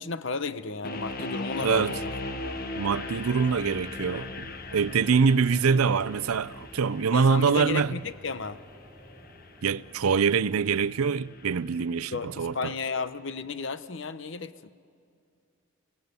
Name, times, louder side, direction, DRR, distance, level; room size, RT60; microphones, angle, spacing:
voice 1, 0.0-2.1 2.5-2.6 7.1-8.6 12.1-14.7, left 4 dB, 60° left, 0.8 m, -33 dB
sound 1, 0.8-11.9, left 2 dB, 45° left, 1.4 m, -39 dB
sound 2, 1.1-10.3, equal, 15° right, 6.4 m, -52 dB
voice 2, 1.6-2.0 2.8-7.9 9.6-12.7, right 5 dB, 90° right, 0.5 m, -24 dB
29.5 x 17.5 x 9.6 m
head